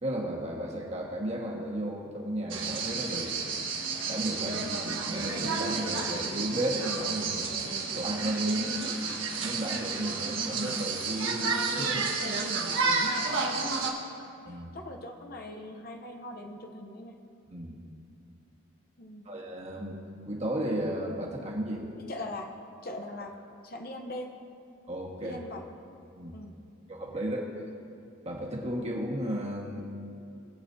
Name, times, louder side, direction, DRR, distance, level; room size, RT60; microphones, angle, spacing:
voice 1, 0.0-3.6 4.1-4.6 5.1-7.6 7.9-9.1 9.4-12.1 14.4-14.7 17.5-17.8 19.2-20.0 20.2-21.8 24.9-25.4 26.1-26.3 26.9-27.5 28.2-29.8, right 1 dB, 30° right, -2 dB, 1.6 m, -34 dB
sound 1, 2.5-13.9, right 4 dB, 70° right, 1.4 m, -31 dB
voice 2, 13.7-17.2 19.0-19.3 22.1-22.5 22.8-23.4 23.6-24.3 25.2-25.6 26.3-26.6, left 1 dB, 45° left, 3 dB, 0.8 m, -41 dB
22.0 x 8.4 x 2.8 m, 2.6 s
head